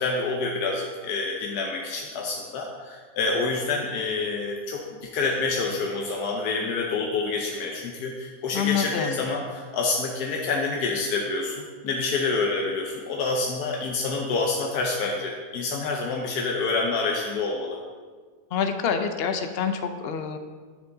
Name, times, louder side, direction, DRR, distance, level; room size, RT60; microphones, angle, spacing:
voice 1, 0.0-17.8, left 3 dB, 75° left, 0 dB, 1.3 m, -27 dB
voice 2, 8.5-9.2 18.5-20.4, left 7 dB, 55° left, 7 dB, 0.7 m, -26 dB
10.0 x 6.9 x 3.9 m, 1.5 s
omnidirectional pair, 1.7 m